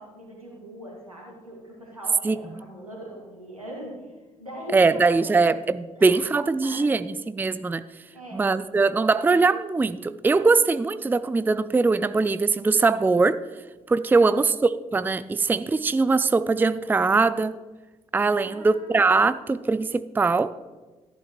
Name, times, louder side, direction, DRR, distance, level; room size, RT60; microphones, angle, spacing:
voice 1, 0.0-5.4 6.0-6.3 6.6-6.9 8.1-8.4 14.2-14.5 18.3-19.5, right 1 dB, 90° right, -3 dB, 2.0 m, -41 dB
voice 2, 4.7-7.8 8.3-13.4 13.9-14.5 14.9-17.6 18.1-20.5, right 4 dB, 10° right, 15 dB, 0.4 m, -21 dB
14.5 x 11.0 x 3.1 m, 1.2 s
figure-of-eight pair, 45°, 17 cm